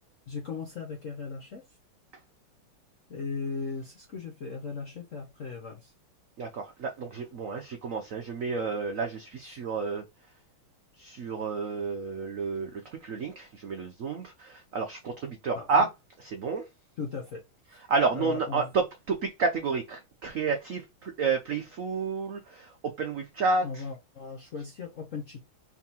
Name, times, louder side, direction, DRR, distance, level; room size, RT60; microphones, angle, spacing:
voice 1, 0.3-1.6 3.1-5.9 9.4-9.6 15.5-15.9 17.0-17.4 17.7-17.8 18.1-18.7 23.6-25.4, left 5 dB, 60° left, 0.8 m, -37 dB
voice 2, 6.4-10.0 11.0-15.9 16.2-16.7 17.9-23.8, right 4 dB, 75° right, 0.7 m, -30 dB
4.6 x 3.6 x 2.9 m
omnidirectional pair, 2.3 m